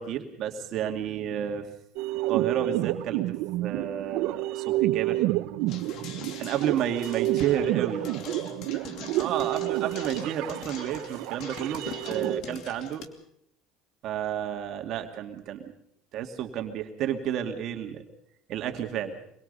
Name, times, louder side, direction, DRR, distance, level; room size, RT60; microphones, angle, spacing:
voice 1, 0.0-1.7 2.3-3.4 3.6-5.2 6.4-8.1 9.2-13.0 14.0-15.7 16.1-18.0 18.5-19.2, right 9 dB, 55° right, 4 dB, 2.3 m, -31 dB
sound 1, 2.0-12.4, right 17 dB, 70° right, 0.9 m, -29 dB
sound 2, 5.7-13.1, left 6 dB, 55° left, 2.6 m, -44 dB
voice 2, 5.8-6.6 7.4-9.8 12.0-12.9, equal, 30° left, 6 dB, 6.8 m, -44 dB
25.0 x 22.0 x 5.5 m, 0.71 s
cardioid pair, 125°, 0 cm